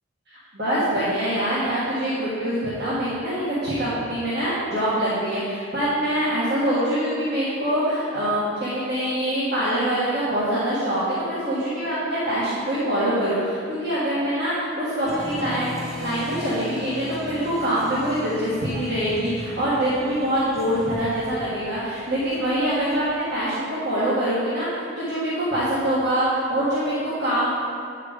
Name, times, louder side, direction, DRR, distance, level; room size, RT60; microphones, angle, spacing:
voice 1, 0.3-15.7 16.0-27.5, right 1 dB, 55° right, -10 dB, 1.7 m, -24 dB
Applause, 15.0-23.4, left 1 dB, ahead, 1.4 m, -37 dB
9.4 x 4.7 x 5.1 m, 2.4 s
head